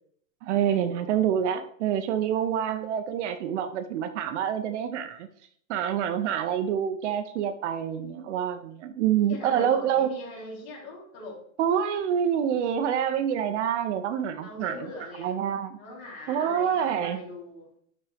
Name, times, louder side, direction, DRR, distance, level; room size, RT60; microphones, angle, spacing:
voice 1, 0.4-5.3 5.7-10.1 11.6-14.9 15.2-15.8 16.3-17.2, right 9 dB, 55° right, 9 dB, 0.7 m, -27 dB
voice 2, 9.3-11.4 14.4-15.4 15.8-17.7, left 2 dB, 45° left, -4 dB, 3.4 m, -41 dB
11.5 x 4.3 x 3.4 m, 0.64 s
supercardioid pair, 175°, 42 cm